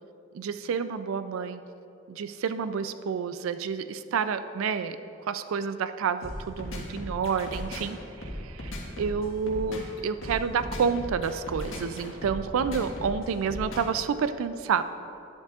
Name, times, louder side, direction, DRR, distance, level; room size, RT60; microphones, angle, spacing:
voice 1, 0.3-1.6 2.1-5.0 5.3-8.7 9.0-14.8, right 6 dB, 80° right, 11 dB, 0.3 m, -29 dB
sound 1, 6.2-14.0, left 1 dB, 70° left, 1.5 m, -37 dB
11.0 x 9.9 x 2.4 m, 2.7 s
head